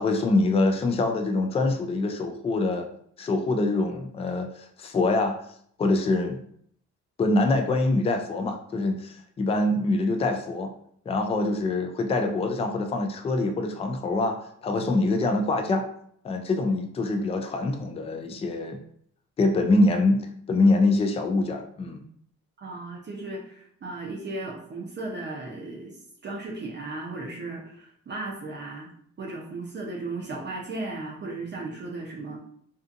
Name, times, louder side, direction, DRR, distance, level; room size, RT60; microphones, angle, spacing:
voice 1, 0.0-2.9 3.2-5.4 5.8-6.4 7.2-10.7 11.1-15.9 16.2-18.8 19.4-22.0, left 2 dB, 20° left, 5 dB, 0.3 m, -24 dB
voice 2, 22.6-28.9 29.2-32.4, right 2 dB, 35° right, -2 dB, 0.6 m, -36 dB
2.6 x 2.4 x 2.5 m, 0.64 s
cardioid pair, 90°, 30 cm